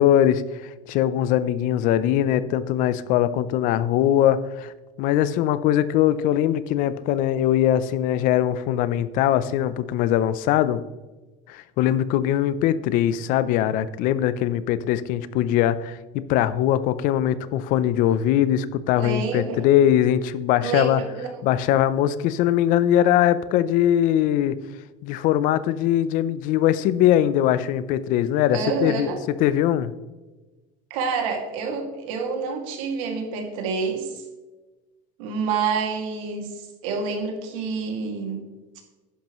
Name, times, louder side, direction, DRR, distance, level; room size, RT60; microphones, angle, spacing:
voice 1, 0.0-4.7 5.0-10.8 11.5-21.0 21.4-24.6 25.0-29.1 29.4-29.9, left 11 dB, 55° left, 15 dB, 0.6 m, -21 dB
voice 2, 19.0-19.6 20.6-21.3 28.5-29.2 30.9-34.2 35.2-38.5, right 5 dB, 90° right, 3 dB, 2.4 m, -28 dB
11.5 x 10.0 x 3.1 m, 1.2 s
cardioid pair, 160°, 16 cm